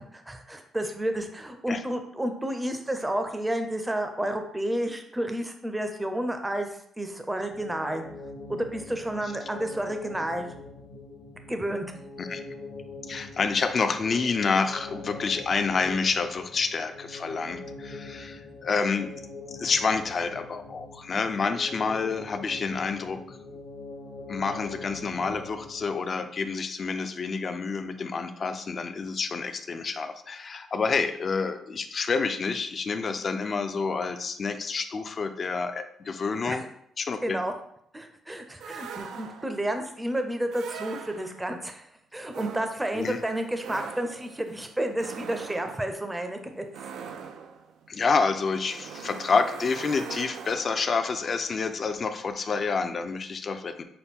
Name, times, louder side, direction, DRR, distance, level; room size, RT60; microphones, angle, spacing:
voice 1, 0.0-6.7 7.0-8.0 8.5-10.5 11.5-11.9 36.4-36.6 37.2-37.5 37.9-41.9 42.1-46.6, right 1 dB, 10° right, 6 dB, 0.6 m, -31 dB
sound 1, 7.4-26.2, left 3 dB, 60° left, 0.8 m, -43 dB
voice 2, 13.1-19.1 19.5-23.4 24.3-36.6 37.0-37.4 42.9-43.2 47.9-53.8, left 4 dB, 45° left, 9 dB, 0.4 m, -28 dB
sound 2, 38.6-39.7 40.5-41.5 42.3-51.0, right 6 dB, 80° right, 0.4 m, -42 dB
5.7 x 2.2 x 3.6 m, 0.70 s
cardioid pair, 90°, 0 cm